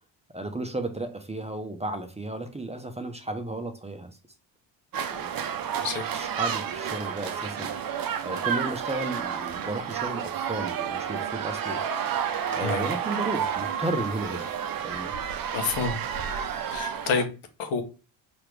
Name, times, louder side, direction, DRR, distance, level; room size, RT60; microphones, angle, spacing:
voice 1, 0.3-4.1 5.1-5.4 6.1-7.7 8.2-11.8 12.5-15.1, right 2 dB, 15° right, 0.8 m, -33 dB
sound 1, 4.9-17.3, right 8 dB, 45° right, 0.7 m, -31 dB
voice 2, 15.5-15.9 16.7-17.3 17.6-17.8, left 5 dB, 70° left, 1.1 m, -28 dB
4.6 x 3.1 x 3.4 m
supercardioid pair, 60°, 50 cm